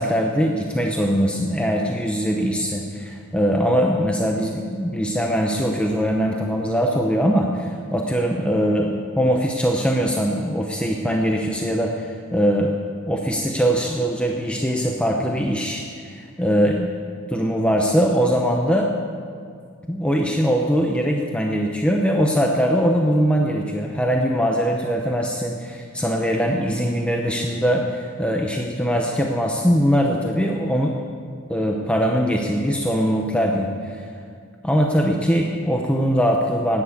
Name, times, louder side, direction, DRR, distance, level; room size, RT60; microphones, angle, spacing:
voice 1, 0.0-12.8 13.0-16.9 17.3-18.9 19.9-31.0 31.5-34.1 34.6-36.8, equal, 5° left, 0 dB, 0.7 m, -21 dB
11.0 x 9.4 x 8.7 m, 2.2 s
head